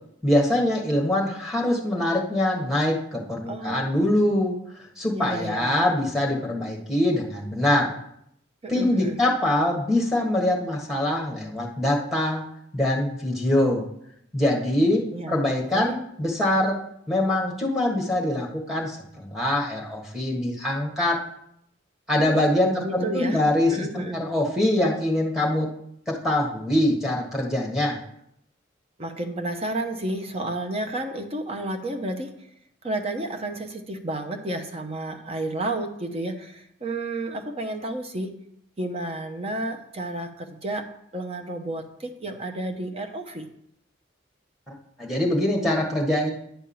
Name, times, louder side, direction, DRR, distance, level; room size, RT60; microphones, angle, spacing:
voice 1, 0.2-8.0 8.7-12.4 12.7-13.8 14.3-16.8 17.1-21.2 22.1-25.7 26.1-28.0 44.7-46.3, left 1 dB, ahead, -2 dB, 1.5 m, -24 dB
voice 2, 3.5-4.0 5.1-5.9 8.6-9.2 15.1-15.5 15.7-15.9 22.1-23.4 23.7-24.2 29.0-32.5 32.8-38.4 38.8-43.5, right 1 dB, 30° right, 5 dB, 0.8 m, -31 dB
10.0 x 3.6 x 7.1 m, 0.75 s
head